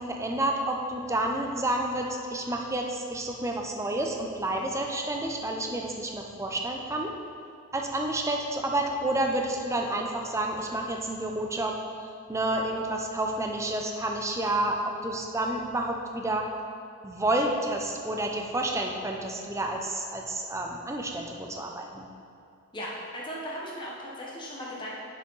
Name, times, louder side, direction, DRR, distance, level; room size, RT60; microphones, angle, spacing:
voice 1, 0.0-7.1 7.7-11.7 12.3-16.5 17.0-22.1, right 1 dB, 15° right, 1 dB, 0.5 m, -30 dB
voice 2, 22.7-24.9, equal, 20° left, -4 dB, 0.9 m, -37 dB
7.4 x 6.3 x 3.9 m, 2.6 s
head